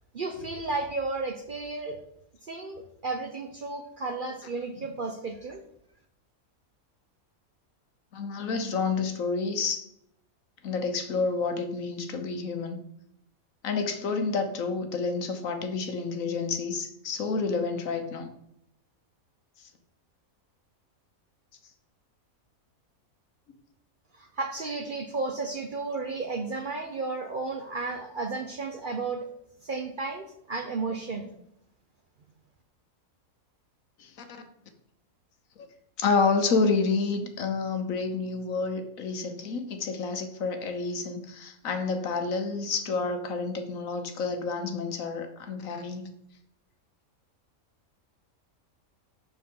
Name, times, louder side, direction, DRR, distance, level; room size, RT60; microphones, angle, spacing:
voice 1, 0.1-2.0 2.4-5.6 24.2-29.3 29.6-31.3, right 3 dB, 50° right, 4 dB, 0.7 m, -33 dB
voice 2, 8.1-9.9 10.6-12.8 13.6-18.3 19.6-19.7 34.0-34.1 35.6-35.7 36.0-46.1, left 4 dB, 70° left, 7 dB, 1.3 m, -29 dB
6.9 x 5.8 x 3.7 m, 0.75 s
omnidirectional pair, 1.5 m